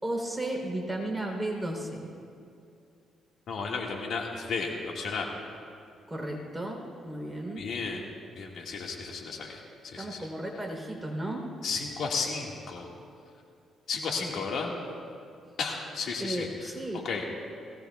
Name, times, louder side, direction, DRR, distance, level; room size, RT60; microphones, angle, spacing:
voice 1, 0.0-2.1 6.1-7.6 10.0-11.4 16.2-17.1, right 1 dB, 5° right, -1 dB, 3.5 m, -34 dB
voice 2, 3.5-5.3 7.6-8.0 8.4-10.3 11.6-12.9 13.9-14.7 15.6-16.7 17.0-17.4, left 4 dB, 65° left, 0 dB, 1.8 m, -33 dB
21.0 x 18.0 x 2.3 m, 2.4 s
cardioid pair, 90°, 0 cm